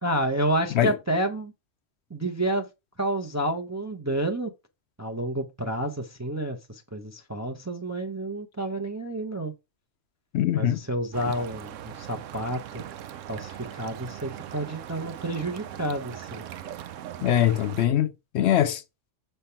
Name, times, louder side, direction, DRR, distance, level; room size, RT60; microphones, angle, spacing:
voice 1, 0.0-1.5 2.1-2.7 3.0-4.5 5.0-9.5 10.6-12.8 13.3-16.4, right 1 dB, 20° right, 0.5 m, -29 dB
voice 2, 10.3-10.8 17.2-18.8, left 11 dB, 70° left, 0.8 m, -22 dB
sound 1, 11.1-17.9, right 11 dB, 85° right, 1.0 m, -40 dB
6.7 x 3.3 x 5.6 m
omnidirectional pair, 1.3 m